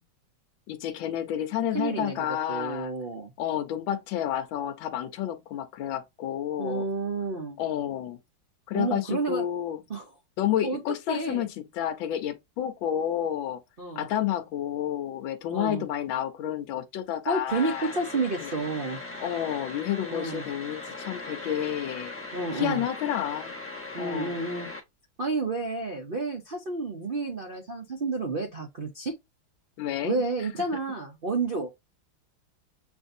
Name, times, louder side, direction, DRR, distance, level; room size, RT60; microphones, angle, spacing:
voice 1, 0.7-2.9 3.4-6.9 7.6-8.2 8.7-9.8 10.4-13.6 14.0-17.9 18.4-18.5 19.2-22.1 22.5-23.6 24.0-24.4 29.8-30.2, left 11 dB, 75° left, 1.4 m, -30 dB
voice 2, 1.7-3.3 6.6-7.6 8.7-9.4 9.9-10.1 10.6-10.8 11.1-11.4 13.8-14.1 15.5-15.8 17.3-19.0 20.1-20.4 22.3-22.8 23.9-24.7 25.2-29.1 30.0-31.7, right 3 dB, 70° right, 0.5 m, -30 dB
sound 1, 17.5-24.8, left 2 dB, 15° left, 0.5 m, -39 dB
7.3 x 2.6 x 2.6 m
omnidirectional pair, 2.2 m